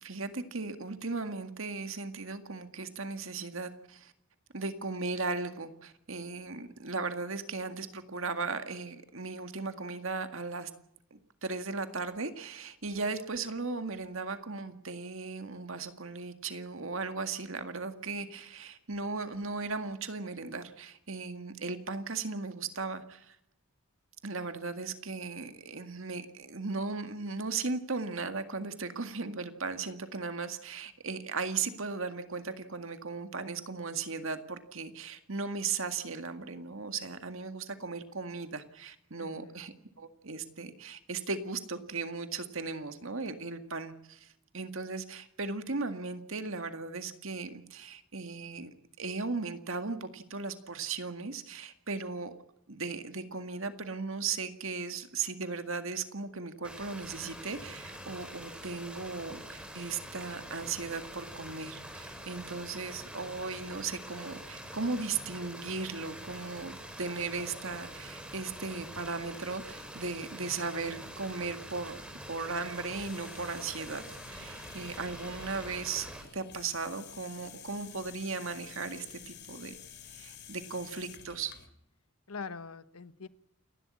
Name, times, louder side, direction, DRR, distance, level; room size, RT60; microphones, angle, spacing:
voice 1, 0.0-4.1 4.5-10.7 11.1-23.4 24.2-48.7 49.0-52.3 52.7-72.0 72.3-79.8 80.1-81.5, right 4 dB, 65° right, 9 dB, 1.9 m, -37 dB
voice 2, 39.2-39.7 82.3-83.3, left 4 dB, 90° left, 14 dB, 1.2 m, -43 dB
sound 1, 56.6-76.2, equal, 5° right, 4.6 m, -45 dB
sound 2, 72.6-81.7, left 8 dB, 50° left, 2.6 m, -51 dB
29.0 x 12.0 x 9.7 m, 0.77 s
head